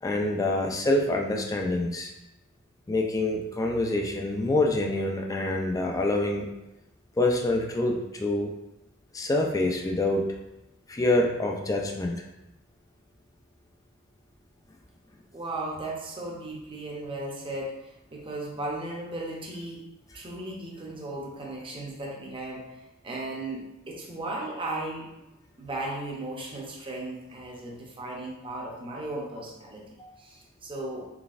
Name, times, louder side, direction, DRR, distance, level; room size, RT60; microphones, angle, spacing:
voice 1, 0.0-2.1 2.9-6.5 7.2-8.5 9.1-10.3 10.9-12.1 30.0-30.1, left 2 dB, 15° left, 1 dB, 0.3 m, -26 dB
voice 2, 15.3-19.8 20.1-25.1 25.6-29.8 30.2-31.1, right 2 dB, 25° right, -1 dB, 0.7 m, -36 dB
3.9 x 3.3 x 2.4 m, 0.95 s
head